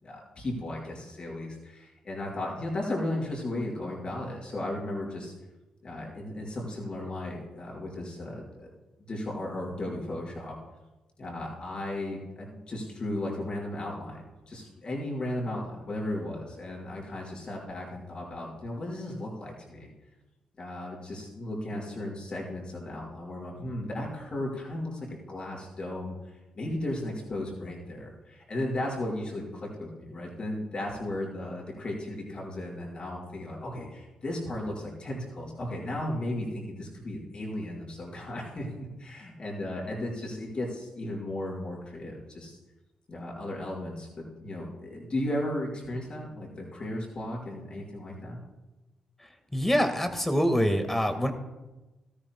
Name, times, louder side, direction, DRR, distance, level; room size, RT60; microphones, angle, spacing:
voice 1, 0.0-5.3 5.8-8.7 9.0-10.5 11.2-19.9 20.6-26.1 26.5-42.6 43.1-44.1 44.4-48.4, left 1 dB, 45° left, -3 dB, 5.0 m, -35 dB
voice 2, 49.5-51.3, equal, 10° left, 7 dB, 1.7 m, -25 dB
17.5 x 13.5 x 2.3 m, 1.1 s
cardioid pair, 70°, 2 cm